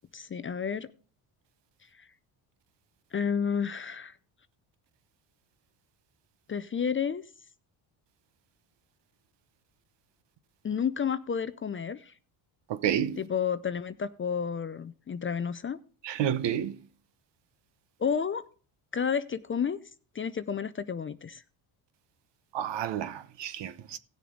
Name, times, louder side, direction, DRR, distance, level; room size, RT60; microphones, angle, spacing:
voice 1, 0.1-0.9 2.0-2.1 3.1-4.2 6.5-7.2 10.6-12.1 13.2-15.8 18.0-18.5 18.9-19.8 20.1-21.4, left 7 dB, 25° left, 0.5 m, -31 dB
voice 2, 12.7-13.2 16.0-16.7 22.5-24.0, right 9 dB, 60° right, 1.0 m, -30 dB
16.5 x 6.8 x 3.8 m
supercardioid pair, 85°, 49 cm